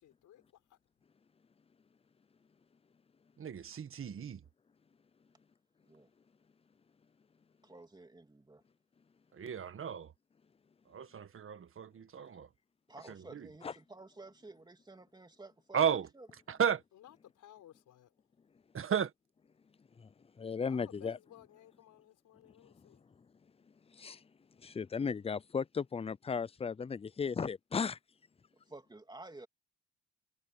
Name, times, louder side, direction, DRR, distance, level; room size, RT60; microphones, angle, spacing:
voice 1, 0.0-0.4 0.7-0.8 16.9-18.1 20.7-23.0, left 12 dB, 80° left, 4.7 m, -58 dB
voice 2, 3.4-4.4 9.3-10.1 10.9-12.5 13.1-13.5 15.7-16.1 16.5-16.8 18.7-19.1, right 8 dB, 45° right, 1.6 m, -34 dB
voice 3, 7.6-8.6 12.9-16.3 28.7-29.5, right 2 dB, 15° right, 3.0 m, -52 dB
voice 4, 20.4-21.2 23.9-24.2 24.6-28.0, left 5 dB, 20° left, 0.5 m, -35 dB
cardioid pair, 90°, 30 cm